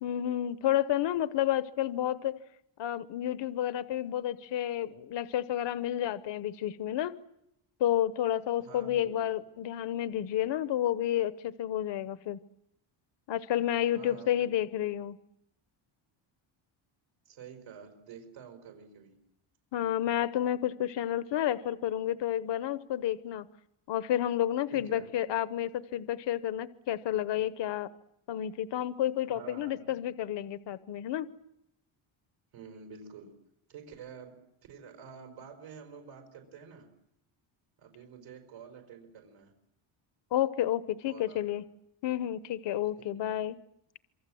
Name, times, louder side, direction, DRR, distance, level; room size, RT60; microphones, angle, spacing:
voice 1, 0.0-2.4 2.8-7.2 7.8-12.4 13.3-15.2 19.7-23.5 23.9-27.9 28.3-31.3 40.3-41.6 42.0-43.6, left 11 dB, 60° left, 13 dB, 1.0 m, -30 dB
voice 2, 8.6-9.3 13.9-14.5 17.3-19.2 24.7-25.1 29.3-30.0 32.5-33.4 33.7-34.4 34.7-36.9 37.8-39.5 41.1-41.6 43.0-43.4, right 6 dB, 90° right, 4 dB, 5.2 m, -49 dB
27.0 x 24.5 x 7.7 m, 0.80 s
cardioid pair, 160°, 49 cm